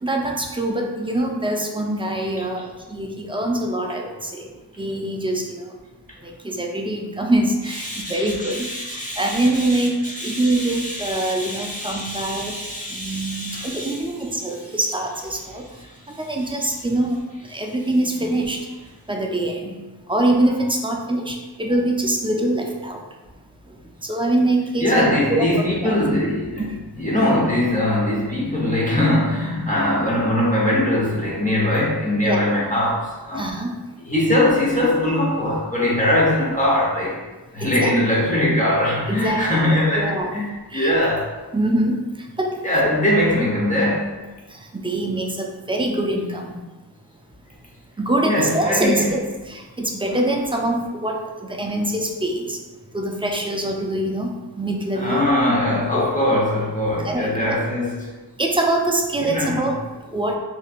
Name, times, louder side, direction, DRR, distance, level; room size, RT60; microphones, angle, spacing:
voice 1, 0.0-4.5 4.8-5.7 6.2-8.7 9.2-9.9 10.2-12.6 12.9-15.6 16.2-17.2 17.5-18.6 19.1-19.8 20.1-23.0 24.0-24.9 25.3-26.0 32.2-32.5 33.4-33.7 37.6-37.9 39.1-39.7 40.0-40.3 40.7-40.9 41.5-42.0 42.4-42.9 44.5-46.6 48.0-52.6 52.9-54.3 54.6-55.2 55.9-56.1 57.0-57.6 58.4-59.8 60.1-60.4, right 1 dB, 15° right, 1 dB, 0.3 m, -24 dB
voice 2, 7.8-14.0 24.8-26.6 27.0-33.5 34.1-37.2 37.5-40.5 40.7-41.3 42.6-44.2 48.2-49.2 55.0-58.1 59.2-59.6, left 1 dB, 20° left, -6 dB, 0.9 m, -21 dB
3.1 x 2.7 x 2.4 m, 1.2 s
wide cardioid pair, 45°, 43 cm